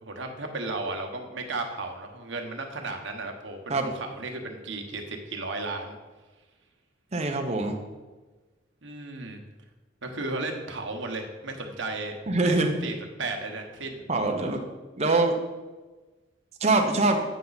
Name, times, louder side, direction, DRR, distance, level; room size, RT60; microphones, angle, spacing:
voice 1, 0.0-6.0 8.8-9.4 10.0-14.0, right 2 dB, 75° right, 3 dB, 1.2 m, -34 dB
voice 2, 7.1-7.8 12.3-12.7 14.1-14.6 15.0-15.4 16.6-17.2, right 2 dB, 35° right, 3 dB, 0.9 m, -23 dB
9.1 x 5.9 x 4.1 m, 1.3 s
head